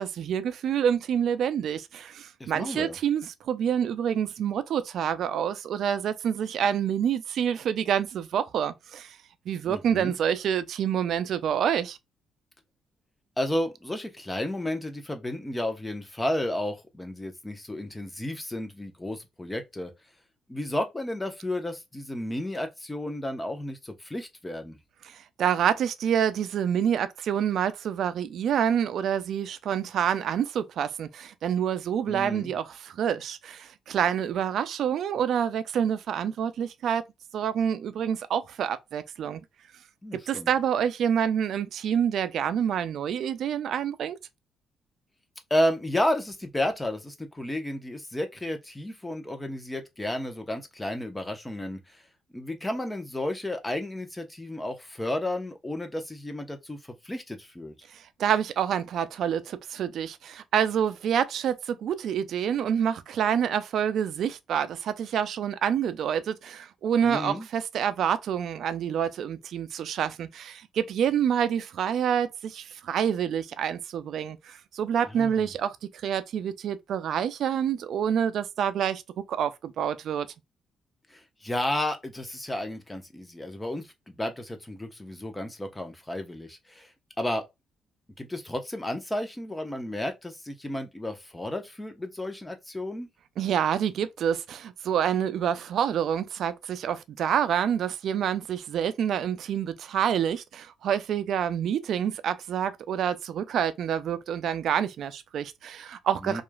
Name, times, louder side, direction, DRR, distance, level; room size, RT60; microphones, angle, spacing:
voice 1, 0.0-9.2 9.5-12.0 25.0-37.0 37.3-39.4 40.3-44.2 57.9-75.8 76.0-79.0 79.3-80.3 93.4-106.4, right 8 dB, 70° right, 0.4 m, -27 dB
voice 2, 2.4-3.0 9.7-10.2 13.4-19.9 20.5-24.8 32.1-32.5 40.0-40.5 45.5-52.0 52.3-56.8 57.0-57.7 67.0-67.5 75.0-75.5 81.1-86.9 87.2-87.4 88.2-93.1 106.2-106.4, left 1 dB, 15° left, 0.7 m, -32 dB
2.9 x 2.4 x 2.2 m
cardioid pair, 90°, 0 cm